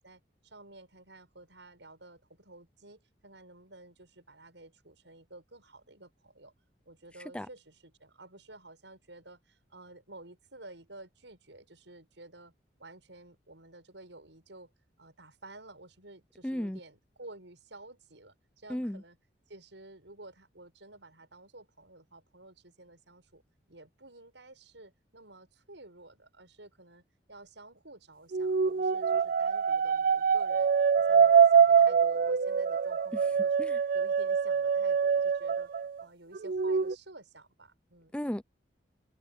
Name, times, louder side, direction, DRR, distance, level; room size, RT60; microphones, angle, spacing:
voice 1, 0.0-6.5 6.9-12.5 12.8-14.7 15.0-19.2 19.5-23.4 23.7-27.0 27.3-30.7 31.0-33.7 33.9-35.7 36.0-38.2, right 2 dB, 85° right, 7.1 m, -52 dB
voice 2, 16.4-16.8 18.7-19.0 33.1-33.2 33.6-33.8 38.1-38.5, equal, 5° left, 0.5 m, -35 dB
sound 1, 28.3-36.0 36.3-36.9, right 6 dB, 50° right, 0.4 m, -24 dB
head